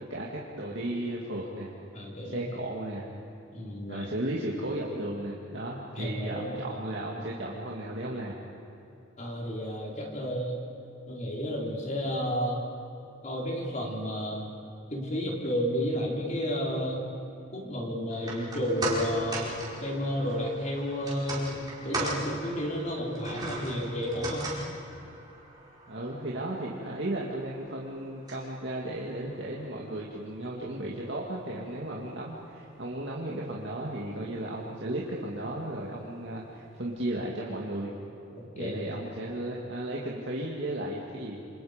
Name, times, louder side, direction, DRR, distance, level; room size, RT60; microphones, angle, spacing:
voice 1, 0.0-1.7 2.3-3.1 3.9-8.3 25.9-37.9 38.6-41.4, right 1 dB, 60° right, -3 dB, 2.3 m, -35 dB
voice 2, 1.9-2.5 3.5-4.1 6.0-6.6 9.2-10.6 11.1-12.6 13.2-14.5 14.9-17.0 17.5-24.5 38.4-38.8, equal, 35° left, -1 dB, 4.2 m, -32 dB
sound 1, 18.1-30.5 30.8-30.9, right 2 dB, 20° right, 4.7 m, -39 dB
28.0 x 27.5 x 5.2 m, 2.9 s
head